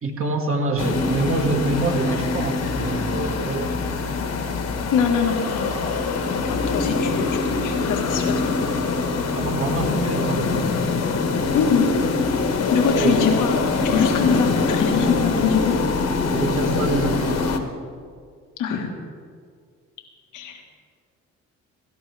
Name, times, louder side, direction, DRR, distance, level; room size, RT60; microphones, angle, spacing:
voice 1, 0.0-3.8 9.3-10.8 12.9-13.2 14.7-14.8 16.3-17.4, right 3 dB, 45° right, 2 dB, 1.8 m, -26 dB
sound 1, 0.8-17.6, left 4 dB, 60° left, 1.4 m, -23 dB
voice 2, 4.9-5.6 6.2-8.6 11.5-11.9 12.7-13.6 13.8-15.8 18.6-18.9 20.3-20.6, left 6 dB, 90° left, 2 dB, 1.6 m, -23 dB
17.5 x 12.5 x 3.4 m, 2.1 s
cardioid pair, 90°, 30 cm